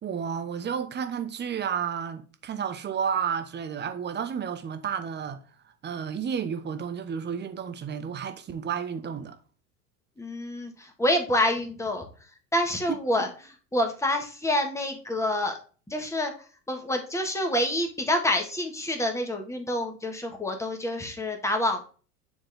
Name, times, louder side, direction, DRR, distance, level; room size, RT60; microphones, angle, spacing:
voice 1, 0.0-5.4 5.8-9.4, right 7 dB, 20° right, 0.9 m, -31 dB
voice 2, 10.2-10.7 11.0-12.1 12.5-13.3 13.7-15.6 15.9-16.3 16.7-21.9, left 1 dB, 5° left, 1.5 m, -27 dB
9.2 x 3.6 x 3.4 m
hypercardioid pair, 95°, 47 cm